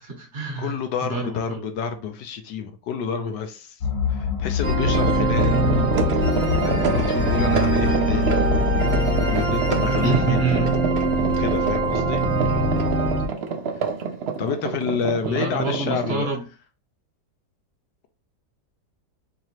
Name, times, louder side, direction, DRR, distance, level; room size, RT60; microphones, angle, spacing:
voice 1, 0.0-1.7 5.5-6.0 8.2-8.6 10.0-10.7 15.2-16.4, right 3 dB, 45° right, 1.2 m, -29 dB
voice 2, 0.6-3.8 4.1-5.6 6.6-8.4 9.2-10.7 11.4-12.2 14.4-16.3, left 6 dB, 85° left, 1.3 m, -29 dB
sound 1, 3.8-9.3, left 8 dB, 60° left, 1.2 m, -26 dB
sound 2, 4.6-13.3, right 2 dB, 10° left, 0.7 m, -22 dB
sound 3, 4.9-16.1, right 6 dB, 85° right, 0.5 m, -28 dB
4.6 x 3.0 x 2.9 m
omnidirectional pair, 1.8 m